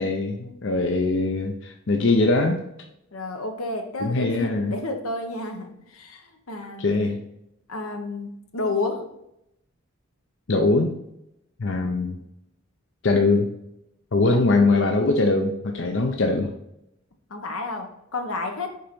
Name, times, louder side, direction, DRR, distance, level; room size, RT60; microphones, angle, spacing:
voice 1, 0.0-2.6 4.0-4.7 6.8-7.2 10.5-10.9 11.6-12.2 13.0-13.5 14.1-16.5, left 3 dB, 60° left, 3 dB, 0.6 m, -22 dB
voice 2, 3.1-6.9 7.7-9.1 17.3-18.8, left 2 dB, 90° left, 4 dB, 1.1 m, -31 dB
6.7 x 3.9 x 4.5 m, 0.82 s
head